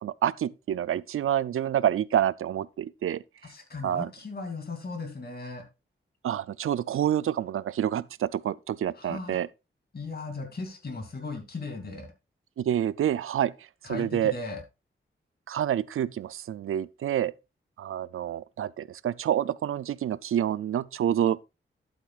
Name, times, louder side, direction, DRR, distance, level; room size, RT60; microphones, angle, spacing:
voice 1, 0.0-3.2 3.8-4.1 6.2-9.5 12.6-13.5 13.9-14.3 15.5-17.3 17.8-21.5, right 10 dB, 85° right, 0.4 m, -28 dB
voice 2, 3.4-5.7 8.9-9.4 9.9-12.1 13.8-14.6, left 3 dB, 50° left, 2.6 m, -37 dB
11.5 x 8.1 x 2.4 m
wide cardioid pair, 90°, 21 cm